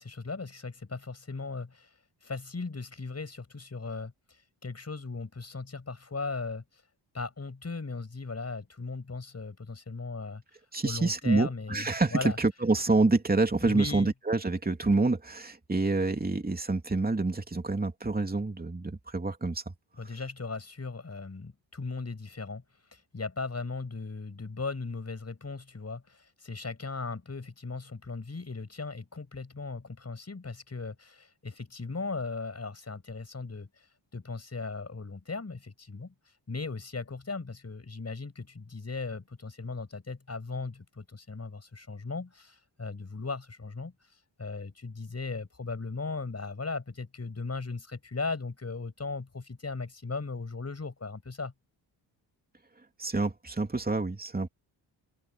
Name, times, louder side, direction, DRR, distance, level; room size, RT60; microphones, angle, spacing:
voice 1, 0.0-1.9 2.2-4.1 4.6-6.6 7.1-10.4 10.8-12.4 13.6-14.1 20.0-22.6 22.9-33.7 34.1-36.1 36.5-43.9 44.4-51.5, left 4 dB, 30° left, 6.4 m, -37 dB
voice 2, 10.7-19.7 53.0-54.5, right 3 dB, 20° right, 3.0 m, -27 dB
open air
cardioid pair, 70°, 47 cm